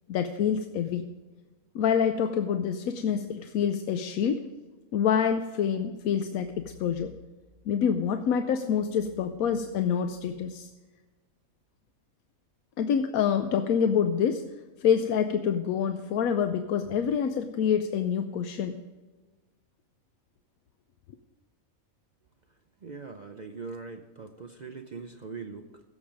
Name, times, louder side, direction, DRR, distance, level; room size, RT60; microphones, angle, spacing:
voice 1, 0.1-1.0 1.7-4.4 4.9-7.1 7.7-10.7 12.8-14.4 14.8-18.7, left 7 dB, 90° left, 8 dB, 1.1 m, -26 dB
voice 2, 22.8-25.8, right 4 dB, 45° right, 4 dB, 0.5 m, -41 dB
16.0 x 7.3 x 5.0 m, 1.3 s
omnidirectional pair, 1.5 m